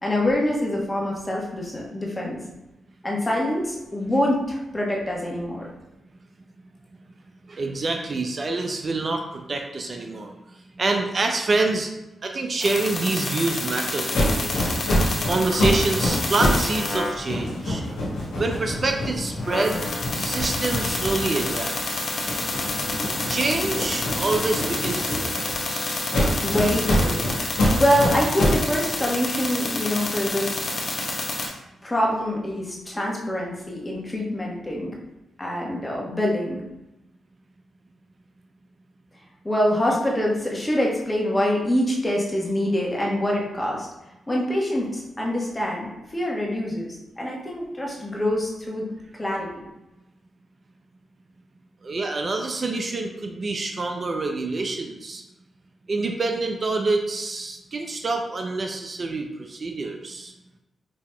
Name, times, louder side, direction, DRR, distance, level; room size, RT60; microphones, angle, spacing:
voice 1, 0.0-2.4 3.0-5.7 26.4-27.2 27.8-30.6 31.8-34.9 35.4-36.6 39.4-43.9 44.3-48.9 49.2-49.7, left 1 dB, 25° left, -2 dB, 1.1 m, -25 dB
voice 2, 7.5-10.4 10.8-11.9 12.2-14.7 15.2-17.8 18.4-19.8 20.2-21.7 23.3-26.0 51.8-55.2 55.9-60.3, right 3 dB, 50° right, 4 dB, 0.4 m, -26 dB
sound 1, 12.6-17.2 19.1-19.2 19.4-31.5, left 2 dB, 60° left, 0.9 m, -29 dB
sound 2, 14.1-16.7 17.0-21.8 22.2-25.5 26.1-28.7, left 1 dB, 90° left, 1.1 m, -26 dB
5.2 x 2.9 x 2.2 m, 0.94 s
supercardioid pair, 45°, 0 cm